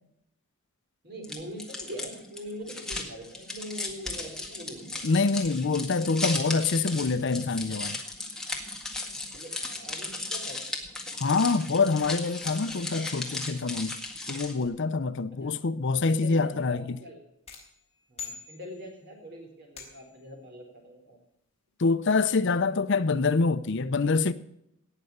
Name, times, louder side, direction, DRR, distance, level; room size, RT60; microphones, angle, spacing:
voice 1, 1.0-5.2 9.3-10.6 14.2-14.3 15.4-15.6 16.1-17.2 18.1-21.2 22.4-22.6, equal, 45° right, 4.1 m, -43 dB
sound 1, 1.2-14.7, left 2 dB, 5° left, 1.8 m, -36 dB
voice 2, 5.0-8.0 11.2-14.0 14.3-17.0 21.8-24.3, left 4 dB, 55° left, 0.6 m, -25 dB
sound 2, 17.5-19.1 19.8-20.3, left 6 dB, 30° left, 3.8 m, -44 dB
18.0 x 6.6 x 7.2 m
head